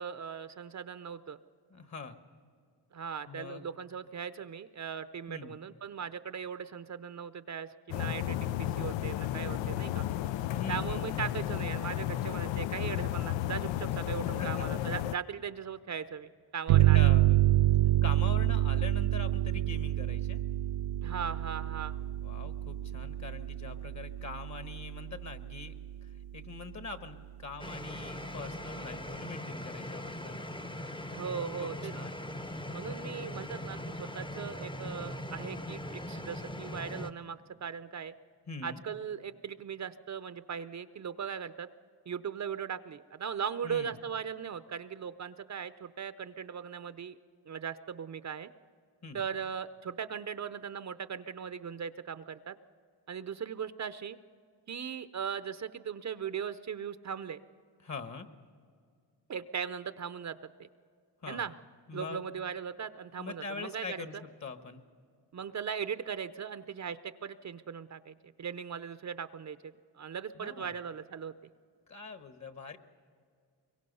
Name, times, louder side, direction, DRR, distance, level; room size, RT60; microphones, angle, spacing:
voice 1, 0.0-1.4 2.9-10.1 10.7-17.1 21.0-21.9 31.1-31.9 32.7-38.1 38.6-41.7 42.1-47.2 47.5-48.5 49.1-52.6 53.1-54.2 54.7-57.4 59.3-60.7 61.3-61.5 61.9-64.2 65.3-71.3, right 7 dB, 40° right, 12 dB, 0.6 m, -39 dB
voice 2, 1.7-2.2 3.3-3.6 5.3-5.6 10.5-11.2 14.2-14.7 16.8-17.4 18.0-20.4 22.0-25.7 26.3-30.3 31.6-32.2 38.5-38.8 43.6-44.0 49.0-49.2 57.8-58.3 61.2-61.4 61.9-62.2 63.2-64.8 70.3-70.7 71.9-72.8, left 4 dB, 40° left, 9 dB, 1.6 m, -43 dB
sound 1, 7.9-15.2, left 13 dB, 85° left, 0.6 m, -33 dB
sound 2, 16.7-26.0, right 14 dB, 80° right, 0.6 m, -28 dB
sound 3, 27.6-37.1, left 1 dB, 10° left, 0.8 m, -40 dB
24.5 x 23.0 x 5.5 m, 2.2 s
cardioid pair, 85°, 44 cm